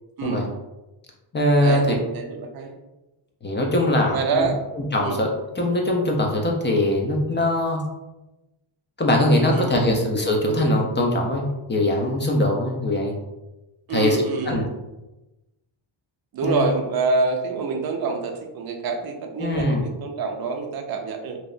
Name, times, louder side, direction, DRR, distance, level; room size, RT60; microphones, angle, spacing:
voice 1, 0.2-0.5 1.6-2.7 4.1-4.6 5.0-5.2 9.5-9.9 13.9-14.7 16.3-21.4, right 4 dB, 50° right, 4 dB, 0.5 m, -26 dB
voice 2, 1.3-1.9 3.4-4.5 4.7-7.8 9.0-13.1 13.9-14.6 16.4-16.6 19.4-19.8, left 1 dB, 25° left, 0 dB, 0.4 m, -22 dB
2.9 x 2.0 x 2.5 m, 1.0 s
cardioid pair, 95°, 50 cm